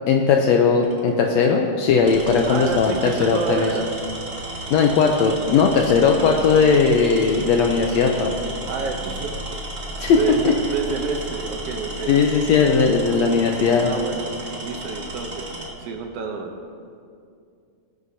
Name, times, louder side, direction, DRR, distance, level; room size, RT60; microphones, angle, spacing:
voice 1, 0.1-3.7 4.7-8.3 10.0-10.2 10.4-10.5 12.1-13.9, left 5 dB, 80° left, 2 dB, 1.6 m, -18 dB
Tools, 0.8-1.1 1.9-15.8, right 1 dB, 50° right, 0.7 m, -33 dB
voice 2, 2.4-3.9 8.7-9.3 10.0-12.3 13.4-15.5 15.8-16.5, right 5 dB, 75° right, 3 dB, 1.4 m, -29 dB
21.0 x 8.0 x 2.7 m, 2.4 s
omnidirectional pair, 3.7 m